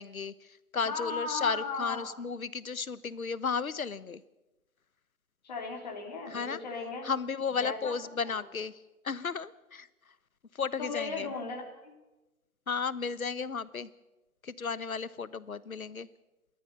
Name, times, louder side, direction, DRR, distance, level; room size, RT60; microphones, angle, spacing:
voice 1, 0.0-4.2 6.3-6.6 7.0-8.8 9.0-9.9 10.5-11.3 12.7-13.9 14.4-16.1, left 5 dB, 70° left, 18 dB, 1.1 m, -34 dB
voice 2, 0.8-2.1 5.4-7.1 7.6-7.9 8.2-8.4 10.8-11.9, left 4 dB, 30° left, 1 dB, 2.9 m, -36 dB
29.0 x 13.5 x 6.6 m, 1.1 s
figure-of-eight pair, 160°, 44 cm